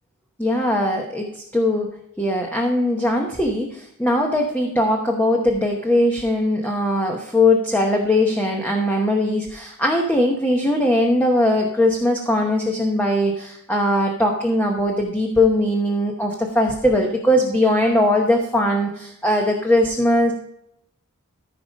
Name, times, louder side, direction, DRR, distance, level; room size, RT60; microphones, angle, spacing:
voice 1, 0.4-1.3 1.5-1.9 2.2-20.3, left 1 dB, 10° left, 1 dB, 1.0 m, -20 dB
14.5 x 5.0 x 5.2 m, 0.78 s
head